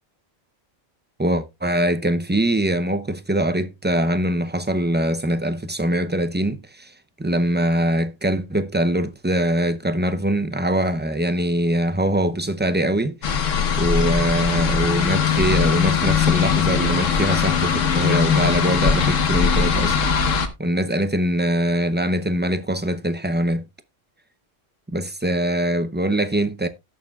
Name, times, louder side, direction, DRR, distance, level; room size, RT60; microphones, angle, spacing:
voice 1, 1.2-13.4 13.8-20.1 20.6-23.6 24.9-26.7, right 1 dB, 15° right, 0.4 m, -23 dB
sound 1, 13.2-20.5, left 6 dB, 85° left, 1.5 m, -20 dB
17.5 x 6.7 x 2.3 m
omnidirectional pair, 1.3 m